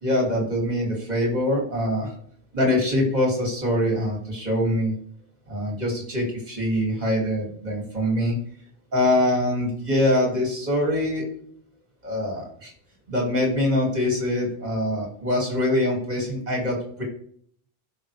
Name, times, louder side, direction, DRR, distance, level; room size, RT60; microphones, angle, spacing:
voice 1, 0.0-2.1 2.5-4.9 5.5-8.4 8.9-11.3 12.0-12.7 13.1-17.0, left 1 dB, 40° right, -1 dB, 2.9 m, -24 dB
16.0 x 5.9 x 3.4 m, 0.62 s
omnidirectional pair, 1.1 m